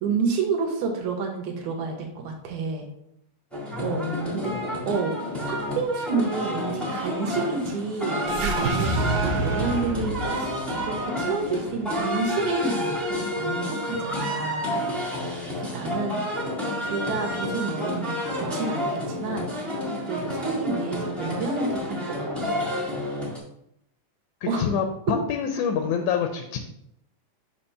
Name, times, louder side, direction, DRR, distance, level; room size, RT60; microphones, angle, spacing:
voice 1, 0.0-2.9 3.8-4.1 4.3-4.5 4.9-5.1 5.5-14.8 15.2-15.3 15.6-16.2 16.8-19.5 20.1-22.6 24.5-24.7 25.1-25.2, right 4 dB, 75° right, 2 dB, 2.2 m, -29 dB
sound 1, 3.5-23.4, left 1 dB, ahead, 0.3 m, -30 dB
voice 2, 3.7-4.6 24.4-26.6, left 7 dB, 80° left, 5 dB, 1.9 m, -27 dB
sound 2, 8.3-12.6, right 3 dB, 90° right, 2.3 m, -29 dB
7.0 x 2.9 x 5.5 m, 0.78 s
omnidirectional pair, 3.6 m